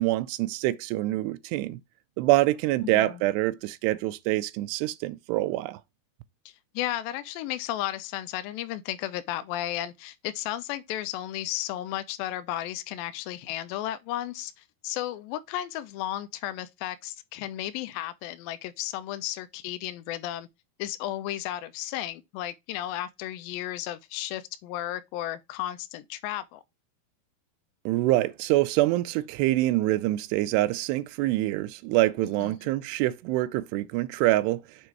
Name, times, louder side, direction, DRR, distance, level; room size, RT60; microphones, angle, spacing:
voice 1, 0.0-1.8 2.2-5.8 27.9-34.6, right 17 dB, 85° right, 2.7 m, -25 dB
voice 2, 2.8-3.2 6.5-20.5 20.8-26.6 32.4-32.5, left 13 dB, 80° left, 2.2 m, -34 dB
7.3 x 3.0 x 4.5 m
omnidirectional pair, 4.8 m